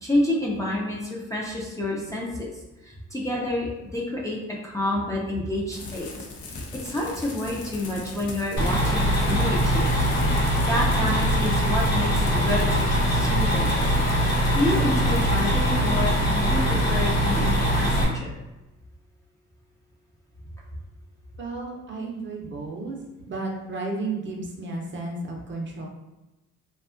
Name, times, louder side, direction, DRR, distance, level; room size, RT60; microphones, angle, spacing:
voice 1, 0.0-2.5 2.8-6.1 6.5-10.1 10.4-13.8 14.5-18.3, left 1 dB, 10° left, -4 dB, 0.4 m, -29 dB
sound 1, 5.7-15.4, left 2 dB, 75° left, 0.6 m, -40 dB
sound 2, 8.6-18.0, equal, 55° left, 0.9 m, -22 dB
voice 2, 21.4-23.0 23.3-25.9, right 3 dB, 40° right, 0 dB, 0.6 m, -33 dB
2.6 x 2.3 x 2.5 m, 1.0 s
cardioid pair, 90°, 30 cm